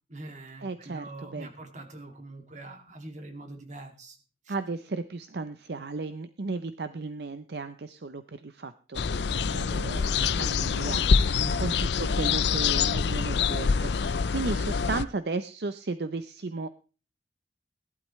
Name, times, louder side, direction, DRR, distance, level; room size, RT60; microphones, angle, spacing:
voice 1, 0.1-4.2 4.5-4.6 11.4-11.7, right 2 dB, 45° right, 5 dB, 2.4 m, -43 dB
voice 2, 0.6-1.5 4.5-16.7, right 3 dB, 65° right, 11 dB, 0.7 m, -35 dB
sound 1, 8.9-15.0, left 5 dB, 75° left, 0.5 m, -25 dB
18.0 x 12.0 x 3.2 m, 0.35 s
head